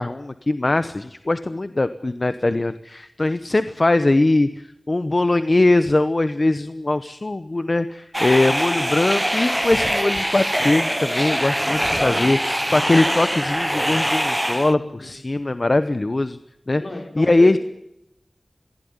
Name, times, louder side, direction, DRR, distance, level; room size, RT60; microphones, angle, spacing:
voice 1, 0.0-12.4 12.7-16.4 16.7-16.8 17.2-17.6, left 2 dB, 50° left, 12 dB, 0.9 m, -21 dB
sound 1, 8.1-14.7, equal, 5° right, 0.9 m, -23 dB
voice 2, 11.9-13.2 14.8-15.2 16.7-17.6, left 2 dB, 70° left, 4 dB, 4.4 m, -36 dB
22.5 x 15.5 x 9.6 m, 0.83 s
wide cardioid pair, 55°, 0 cm